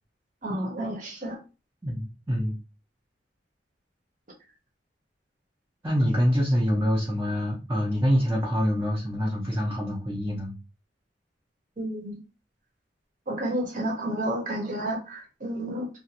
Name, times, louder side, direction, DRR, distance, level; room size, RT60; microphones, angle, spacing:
voice 1, 0.4-1.4 11.8-12.1 13.3-15.9, right 1 dB, 45° right, 0 dB, 0.8 m, -30 dB
voice 2, 1.8-2.6 5.8-10.5, equal, 15° right, -5 dB, 0.6 m, -25 dB
2.4 x 2.4 x 2.8 m, 0.31 s
head